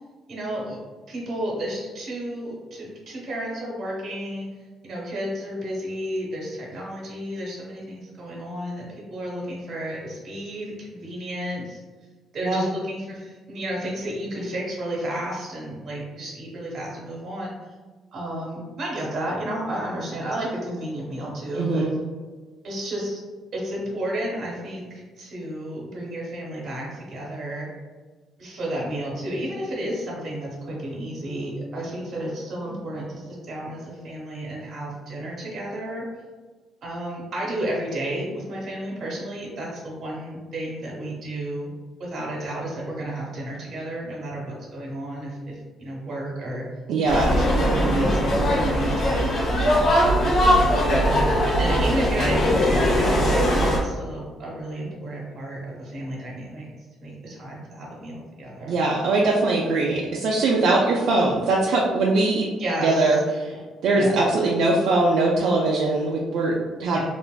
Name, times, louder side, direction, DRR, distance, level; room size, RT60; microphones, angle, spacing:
voice 1, 0.3-0.8 1.1-4.5 4.8-8.8 9.1-11.8 12.3-17.5 18.1-21.9 22.6-23.2 23.5-27.7 28.4-36.0 36.8-41.7 42.0-46.7 47.2-50.4 51.0-56.7 57.0-58.7 62.6-63.2 63.9-64.1 66.9-67.0, right 1 dB, 45° right, -3 dB, 0.9 m, -32 dB
voice 2, 21.5-21.9 46.9-47.3 58.7-62.5 62.8-63.5 63.8-67.0, right 2 dB, 65° right, -3 dB, 0.4 m, -21 dB
sound 1, 47.1-53.8, equal, 55° left, 0.6 m, -20 dB
3.2 x 2.5 x 2.2 m, 1.4 s
cardioid pair, 170°, 0 cm